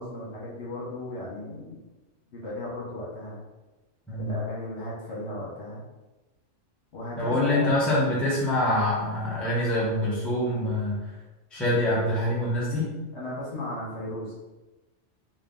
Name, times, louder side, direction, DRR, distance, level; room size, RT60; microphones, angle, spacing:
voice 1, 0.0-1.8 2.3-3.4 4.1-5.8 6.9-8.0 13.1-14.3, left 1 dB, 65° left, -6 dB, 1.4 m, -36 dB
voice 2, 7.2-11.0 11.5-12.9, left 1 dB, ahead, -7 dB, 0.8 m, -25 dB
3.7 x 2.3 x 3.7 m, 1.1 s
omnidirectional pair, 1.3 m